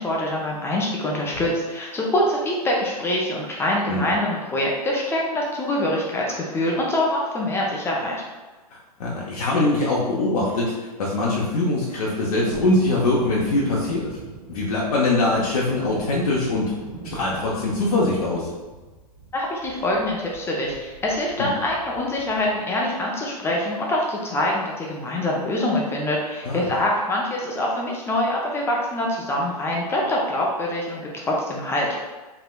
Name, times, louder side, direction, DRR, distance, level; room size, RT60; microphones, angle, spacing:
voice 1, 0.0-8.2 19.3-31.9, left 1 dB, 10° left, -2 dB, 0.4 m, -24 dB
voice 2, 8.7-14.1 14.5-16.7 17.1-18.5 21.4-21.5 26.4-26.7, left 2 dB, 70° left, -5 dB, 0.6 m, -23 dB
Thunderstorm, 12.5-22.7 23.1-23.2, right 3 dB, 65° right, 0.9 m, -41 dB
3.3 x 2.8 x 2.2 m, 1.2 s
hypercardioid pair, 110°, 20 cm